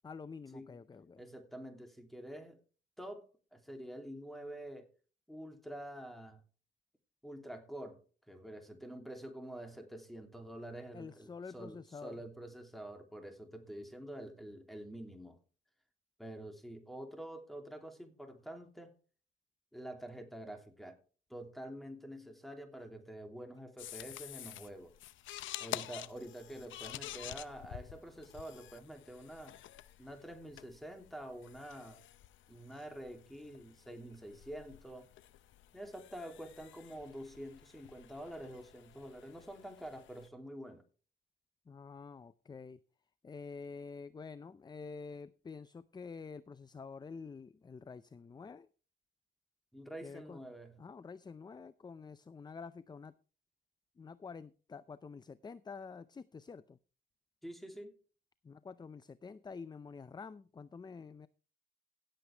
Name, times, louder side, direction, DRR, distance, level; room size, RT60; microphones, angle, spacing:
voice 1, 0.0-1.2 10.9-12.2 41.7-42.8 43.2-48.7 50.0-50.4 50.8-53.1 54.0-56.8 58.4-61.3, left 5 dB, 20° left, 0.5 m, -48 dB
voice 2, 1.2-2.6 3.0-4.9 5.3-6.4 7.2-8.0 8.3-15.4 16.2-18.9 19.7-21.0 21.3-24.9 25.6-29.6 30.0-32.0 32.5-35.1 35.7-40.8 49.7-50.8 57.4-58.0, right 1 dB, ahead, 2.8 m, -47 dB
sound 1, 23.8-40.3, left 13 dB, 75° left, 0.7 m, -49 dB
16.5 x 7.8 x 3.4 m
cardioid pair, 90°, 20 cm